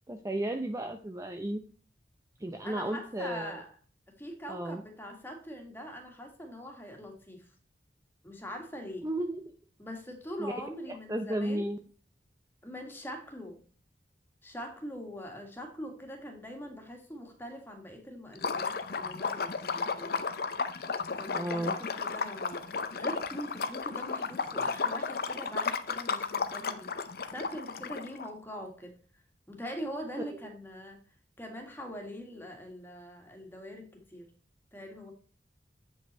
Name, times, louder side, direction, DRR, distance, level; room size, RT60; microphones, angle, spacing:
voice 1, 0.1-1.6 2.4-3.6 4.5-4.8 9.0-9.4 10.4-10.6 10.9-11.8 21.3-21.8 30.2-30.3, right 1 dB, 20° right, 6 dB, 0.5 m, -33 dB
voice 2, 2.6-3.7 4.1-7.5 8.2-9.1 9.8-11.7 12.6-13.6 14.4-20.1 21.2-22.6 22.9-26.9 27.3-28.9 29.5-31.0 31.4-34.3 34.7-35.1, equal, 15° left, 3 dB, 1.7 m, -42 dB
Liquid, 18.4-28.3, left 5 dB, 60° left, 0.7 m, -34 dB
8.1 x 5.4 x 4.3 m, 0.41 s
head